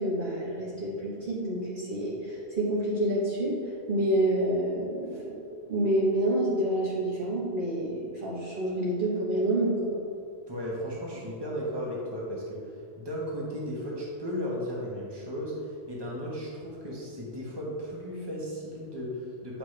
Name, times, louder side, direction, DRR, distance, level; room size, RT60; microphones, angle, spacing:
voice 1, 0.0-3.5 3.9-5.3 5.7-9.8, right 1 dB, 50° right, -5 dB, 1.3 m, -28 dB
voice 2, 10.5-12.6 13.0-19.6, equal, 25° right, -4 dB, 1.3 m, -35 dB
8.3 x 5.7 x 3.3 m, 2.4 s
omnidirectional pair, 1.1 m